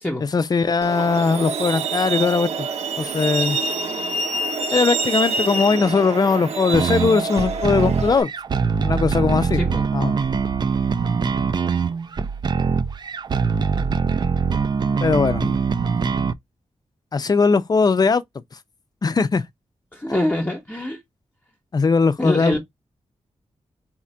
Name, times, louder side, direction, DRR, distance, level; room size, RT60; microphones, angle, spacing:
voice 1, 0.2-2.7 3.0-3.6 4.7-8.3 8.8-9.6 9.9-10.1 15.0-15.6 17.1-18.2 19.0-19.4 21.7-22.6, left 4 dB, 35° left, 0.4 m, -19 dB
Truck, 0.8-8.2, right 3 dB, 70° right, 0.8 m, -26 dB
sound 1, 6.7-16.3, right 5 dB, 40° right, 0.3 m, -23 dB
voice 2, 19.9-21.0 22.2-22.6, left 1 dB, 15° left, 0.8 m, -24 dB
4.2 x 2.5 x 4.2 m
wide cardioid pair, 170°, 12 cm